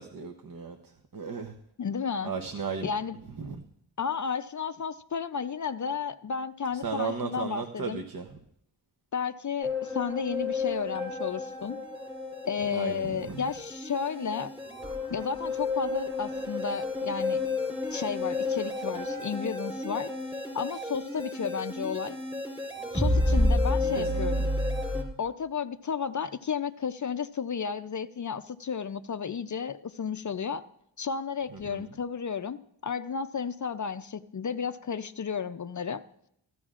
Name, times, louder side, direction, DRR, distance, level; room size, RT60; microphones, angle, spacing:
voice 1, 0.0-1.6 2.2-2.9 3.4-3.7 6.7-8.4 12.7-13.4 23.9-24.5 31.5-31.9, right 5 dB, 45° right, 6 dB, 0.9 m, -36 dB
voice 2, 1.8-2.3 2.8-3.2 4.0-8.0 9.1-11.8 12.5-14.5 15.1-17.4 17.9-20.1 20.5-22.2 22.9-24.5 25.2-30.6 31.0-36.0, left 6 dB, 40° left, 11 dB, 0.5 m, -33 dB
sound 1, 9.6-25.0, left 2 dB, 10° right, 3.8 m, -31 dB
16.5 x 12.5 x 2.4 m, 0.75 s
cardioid pair, 60°, 46 cm